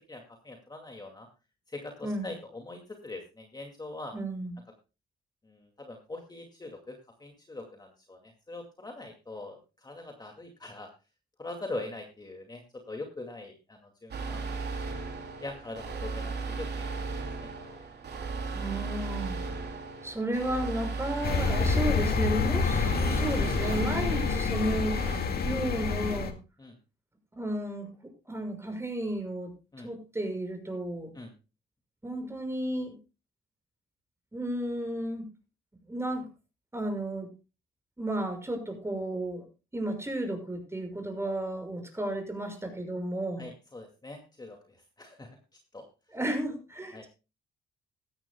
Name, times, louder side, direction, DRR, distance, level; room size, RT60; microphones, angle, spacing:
voice 1, 0.1-1.3 1.7-4.1 5.5-10.9 11.4-14.5 15.4-16.7 16.9-17.8 26.6-26.7 29.7-29.9 31.1-31.3 43.4-45.3 45.7-45.8 46.9-47.0, left 2 dB, 20° left, 3 dB, 2.3 m, -42 dB
voice 2, 4.1-4.5 18.6-19.4 20.0-25.0 25.4-26.3 27.3-27.9 28.3-29.5 29.8-31.1 32.0-33.0 34.3-35.2 35.9-36.2 36.7-37.3 38.0-39.5 39.7-43.5 46.1-47.1, right 1 dB, 15° right, 5 dB, 6.2 m, -33 dB
sound 1, 14.1-25.2, right 4 dB, 55° right, 3.8 m, -36 dB
sound 2, 21.2-26.3, left 5 dB, 50° left, 2.1 m, -28 dB
17.0 x 13.5 x 2.3 m, 0.30 s
cardioid pair, 90°, 20 cm